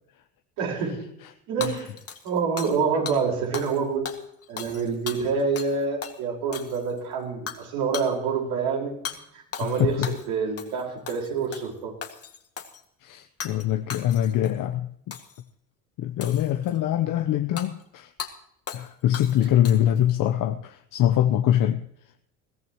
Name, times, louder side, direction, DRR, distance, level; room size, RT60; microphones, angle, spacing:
voice 1, 0.6-1.0 1.5-1.9 2.2-4.1 4.5-9.0 9.3-12.0, right 5 dB, 70° right, 0 dB, 5.1 m, -27 dB
Hammer / Shatter, 1.6-2.8 3.1-3.2 3.5-3.8 4.0-5.7 6.0-6.2 6.5-7.0 7.5-7.6 7.9-8.1 9.0-9.2 9.5-10.3 10.6-10.8 11.1-11.7 12.0-12.8 13.4-13.6 13.9-14.5 15.1-15.4 16.2-16.8 17.6-17.7 18.2-18.3 18.7-18.9 19.1-20.0, left 7 dB, 40° left, 2.1 m, -37 dB
voice 2, 9.6-10.1 13.0-15.2 16.0-18.1 18.7-21.8, left 11 dB, 55° left, 7 dB, 1.0 m, -24 dB
21.5 x 15.0 x 3.1 m, 0.72 s
hypercardioid pair, 75°, 38 cm